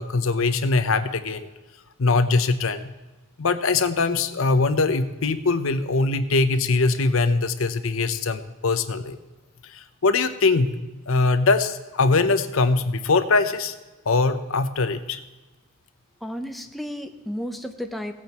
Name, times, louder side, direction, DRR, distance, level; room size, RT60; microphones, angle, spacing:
voice 1, 0.0-1.5 2.0-2.8 3.4-9.2 9.6-10.7 11.1-13.7 14.1-15.2, left 3 dB, 70° left, 10 dB, 0.7 m, -22 dB
voice 2, 16.2-18.1, equal, ahead, 5 dB, 0.7 m, -32 dB
17.0 x 8.8 x 3.0 m, 1.2 s
head